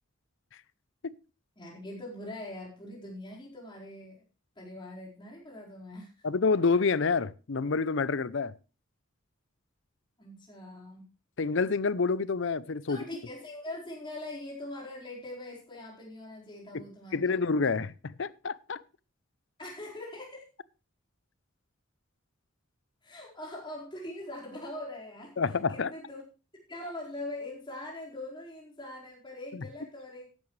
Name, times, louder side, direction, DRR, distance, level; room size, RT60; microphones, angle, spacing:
voice 1, 1.6-4.2 4.6-6.1 10.2-11.1 12.9-17.8 19.6-20.5 23.0-25.4 25.7-26.2 26.7-30.3, left 1 dB, 25° left, 4.6 m, -42 dB
voice 2, 6.2-8.5 11.4-13.0 16.7-16.8 17.1-18.8 25.4-25.9, left 4 dB, 60° left, 0.6 m, -28 dB
14.5 x 11.0 x 3.2 m
head